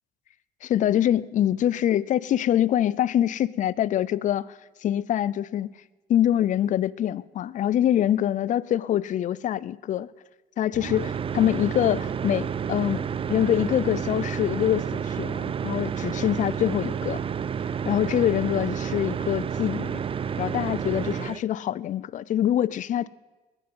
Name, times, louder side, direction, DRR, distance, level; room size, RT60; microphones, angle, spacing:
voice 1, 0.6-4.5 4.8-5.7 6.1-10.1 10.6-17.2 17.8-19.9 20.4-23.1, left 11 dB, 50° left, 0.5 m, -24 dB
sound 1, 10.7-21.4, right 7 dB, 35° right, 0.5 m, -30 dB
21.5 x 10.0 x 5.5 m
cardioid pair, 110°, 17 cm